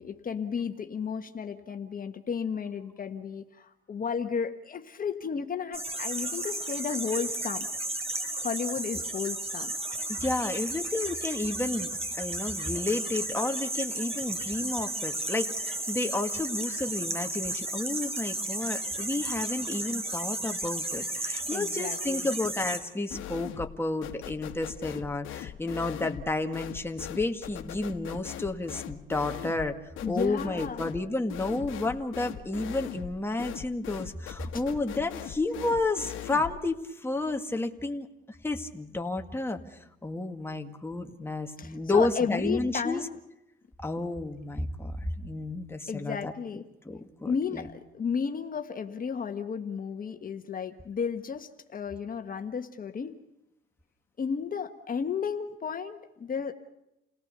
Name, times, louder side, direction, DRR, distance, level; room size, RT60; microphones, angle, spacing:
voice 1, 0.0-7.7 8.4-9.7 21.5-22.3 30.0-30.8 41.6-43.2 45.9-46.6 47.2-53.2 54.2-56.5, left 6 dB, 45° left, 6 dB, 1.4 m, -33 dB
sound 1, 5.7-22.8, right 2 dB, 30° right, 5.3 m, -33 dB
voice 2, 10.1-11.9 12.2-29.8 30.1-39.6 40.0-43.0 43.8-46.3 46.9-47.7, left 2 dB, 10° left, 4 dB, 2.0 m, -31 dB
sound 2, 23.1-23.8 24.0-36.6, left 11 dB, 85° left, 1.2 m, -40 dB
29.0 x 18.0 x 6.8 m, 0.89 s
cardioid pair, 90°, 20 cm